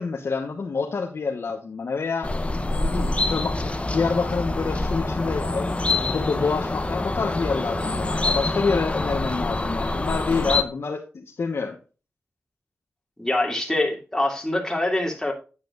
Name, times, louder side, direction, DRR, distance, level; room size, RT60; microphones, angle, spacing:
voice 1, 0.0-2.3 2.8-11.8, left 4 dB, 70° left, 1.2 m, -27 dB
sound 1, 2.2-10.6, left 2 dB, 25° left, 1.0 m, -26 dB
voice 2, 13.2-15.3, left 1 dB, 10° left, 2.8 m, -24 dB
8.9 x 8.8 x 2.5 m
wide cardioid pair, 80°, 5 cm